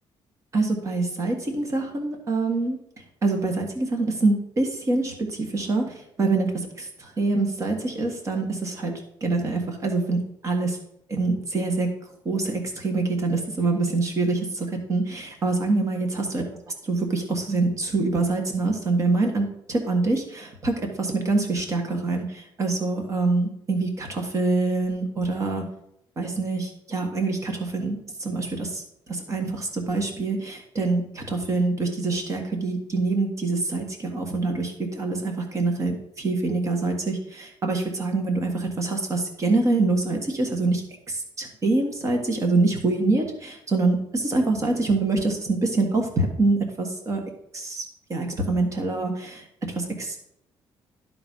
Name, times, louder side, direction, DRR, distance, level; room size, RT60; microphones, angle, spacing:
voice 1, 0.5-2.8 3.2-6.5 6.8-8.9 9.2-10.8 11.1-11.9 12.2-16.1 16.3-16.4 16.8-25.6 26.2-28.8 29.1-47.2 47.5-50.2, right 3 dB, 30° right, 3 dB, 1.5 m, -25 dB
11.5 x 4.0 x 5.4 m, 0.75 s
cardioid pair, 160°, 10 cm